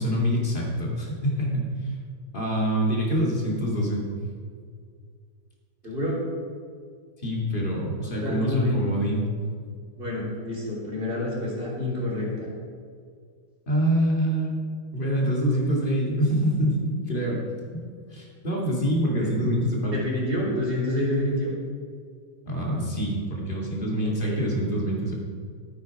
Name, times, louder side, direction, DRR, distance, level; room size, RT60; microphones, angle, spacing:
voice 1, 0.0-1.7 2.3-4.0 7.2-9.2 13.7-14.6 14.9-17.4 18.1-20.0 22.5-25.1, equal, 30° left, -3 dB, 2.7 m, -25 dB
voice 2, 5.8-6.2 8.0-8.8 10.0-12.5 19.2-19.3 19.9-21.5 24.0-24.4, left 1 dB, 30° right, -5 dB, 3.6 m, -28 dB
13.5 x 9.3 x 4.8 m, 2.1 s
omnidirectional pair, 1.8 m